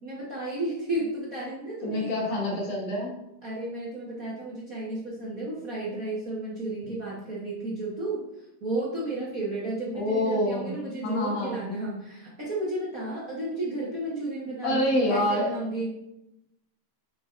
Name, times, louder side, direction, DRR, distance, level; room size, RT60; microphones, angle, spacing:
voice 1, 0.0-2.1 3.4-8.2 8.6-16.0, right 2 dB, 70° right, -7 dB, 0.8 m, -33 dB
voice 2, 1.8-3.1 9.9-10.7 11.0-11.6 14.6-15.5, left 1 dB, 65° left, -2 dB, 2.2 m, -26 dB
6.8 x 6.3 x 2.5 m, 0.86 s
omnidirectional pair, 3.5 m